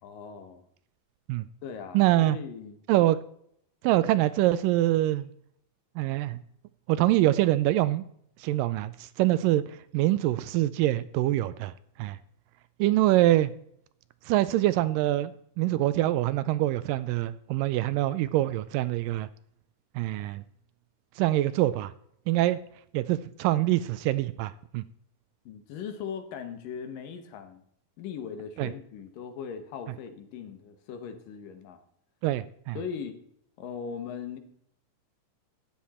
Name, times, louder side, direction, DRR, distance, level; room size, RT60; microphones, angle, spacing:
voice 1, 0.0-0.7 1.6-2.8 25.5-27.6 28.0-31.8 32.7-33.2 33.6-34.4, left 7 dB, 70° left, 2.9 m, -39 dB
voice 2, 1.9-2.4 2.9-3.2 3.8-5.3 6.0-6.4 6.9-8.0 8.4-11.7 12.0-12.2 12.8-13.5 14.3-19.3 20.0-20.4 21.2-21.9 22.3-22.6 22.9-24.8 28.6-28.7 32.2-32.8, right 15 dB, 80° right, 2.1 m, -25 dB
13.0 x 10.5 x 4.3 m
omnidirectional pair, 4.1 m